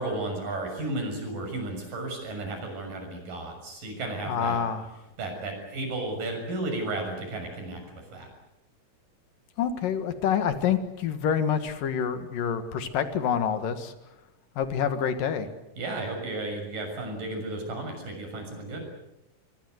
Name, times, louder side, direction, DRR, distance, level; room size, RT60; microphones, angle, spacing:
voice 1, 0.0-4.6 5.2-8.3 15.8-18.9, right 2 dB, 75° right, 4 dB, 8.3 m, -33 dB
voice 2, 4.3-4.8 9.6-13.9 14.6-15.5, left 8 dB, 80° left, 9 dB, 3.4 m, -27 dB
24.5 x 24.0 x 8.0 m, 0.87 s
omnidirectional pair, 3.9 m